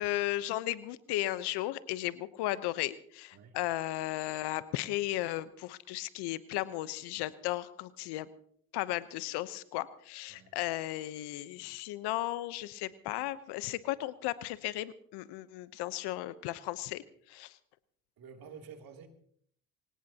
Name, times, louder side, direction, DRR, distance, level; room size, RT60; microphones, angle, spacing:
voice 1, 0.0-8.3 8.7-17.0 17.3-17.5, left 16 dB, 75° left, 15 dB, 1.0 m, -35 dB
voice 2, 18.2-19.1, right 6 dB, 60° right, 3 dB, 3.1 m, -50 dB
24.5 x 18.0 x 2.9 m, 0.62 s
hypercardioid pair, 65°, 40 cm